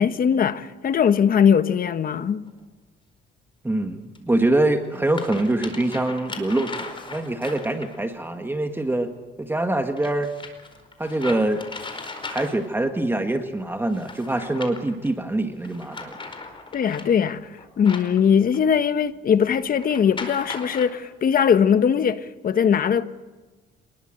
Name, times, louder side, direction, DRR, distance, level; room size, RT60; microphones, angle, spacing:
voice 1, 0.0-2.4 16.7-17.5 17.8-23.0, left 7 dB, 45° left, 1.3 m, -20 dB
sound 1, 2.5-2.6 4.1-4.2 4.8-8.1 10.0-12.9 13.9-15.1 15.6-18.8 19.8-20.9, left 3 dB, 25° left, 4.7 m, -38 dB
voice 2, 3.6-9.1 9.4-10.3 11.0-11.6 12.3-16.2, right 2 dB, 10° right, 1.7 m, -24 dB
27.5 x 20.5 x 7.8 m
cardioid pair, 115°, 20 cm